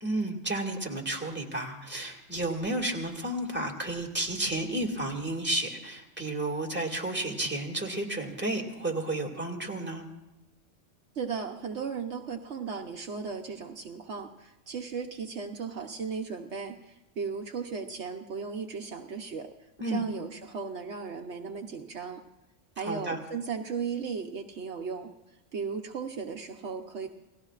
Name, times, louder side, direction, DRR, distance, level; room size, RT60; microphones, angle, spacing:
voice 1, 0.0-10.0 19.8-20.0 22.8-23.2, right 1 dB, 10° right, 0 dB, 2.0 m, -32 dB
voice 2, 11.1-19.5 19.9-22.2 22.8-25.1 25.5-27.1, right 5 dB, 65° right, 3 dB, 1.1 m, -36 dB
29.5 x 17.5 x 2.4 m, 1.0 s
omnidirectional pair, 1.3 m